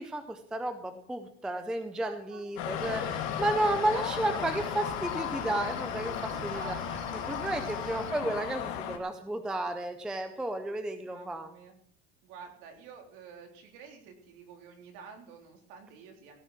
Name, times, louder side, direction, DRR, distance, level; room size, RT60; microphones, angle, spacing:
voice 1, 0.0-6.7 7.3-11.5, right 1 dB, ahead, 8 dB, 0.4 m, -32 dB
voice 2, 2.0-3.1 6.3-6.8 7.2-7.8 11.0-11.8 12.2-16.4, right 6 dB, 55° right, 2 dB, 3.7 m, -49 dB
sound 1, 2.6-9.0, left 10 dB, 45° left, 2.0 m, -35 dB
Cricket, 2.8-8.1, right 7 dB, 25° right, 0.9 m, -46 dB
17.0 x 6.9 x 7.5 m, 0.62 s
cardioid pair, 180°, 32 cm